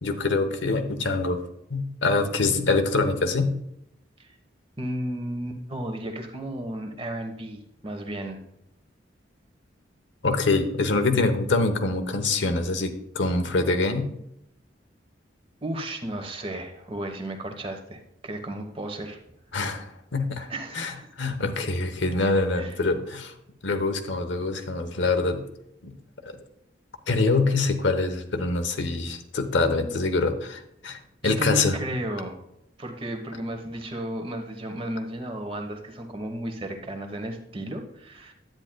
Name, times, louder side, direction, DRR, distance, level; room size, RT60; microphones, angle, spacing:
voice 1, 0.0-1.4 1.7-3.6 10.2-14.1 19.5-20.5 20.7-23.3 23.6-25.4 25.8-25.9 27.1-31.0 31.2-31.8, left 3 dB, 70° left, 7 dB, 1.0 m, -25 dB
voice 2, 4.8-8.4 15.6-19.2 20.5-21.1 22.6-22.7 31.2-32.4 32.8-38.3, right 1 dB, 30° right, 5 dB, 1.1 m, -33 dB
10.5 x 9.0 x 2.2 m, 0.80 s
head